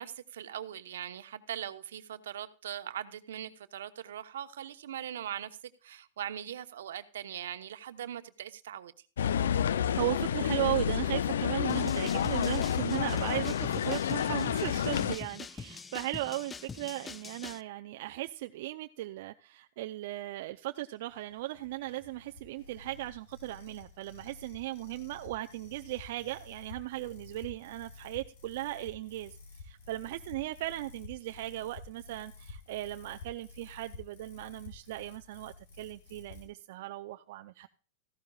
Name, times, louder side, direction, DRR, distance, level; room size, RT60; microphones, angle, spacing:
voice 1, 0.0-8.9, right 10 dB, 80° right, 1.0 m, -41 dB
sound 1, 9.2-15.2, left 9 dB, 85° left, 0.5 m, -29 dB
voice 2, 9.9-37.7, right 17 dB, 60° right, 0.6 m, -37 dB
sound 2, 11.7-17.6, left 5 dB, 15° left, 0.4 m, -43 dB
sound 3, 21.1-36.5, left 3 dB, 60° left, 4.6 m, -51 dB
15.0 x 12.0 x 2.4 m
hypercardioid pair, 135°, 0 cm